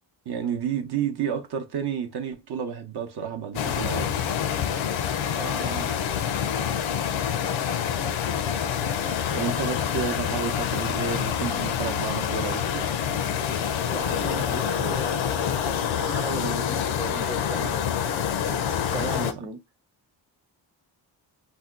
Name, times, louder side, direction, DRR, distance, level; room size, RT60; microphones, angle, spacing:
voice 1, 0.3-4.2 9.3-12.9 18.8-19.4, right 7 dB, 60° right, 0.7 m, -31 dB
sound 1, 3.5-19.3, left 8 dB, 85° left, 0.6 m, -27 dB
voice 2, 5.4-6.0 13.9-18.1 18.4-19.6, right 3 dB, 10° right, 0.5 m, -37 dB
2.7 x 2.2 x 3.5 m
cardioid pair, 110°, 45 cm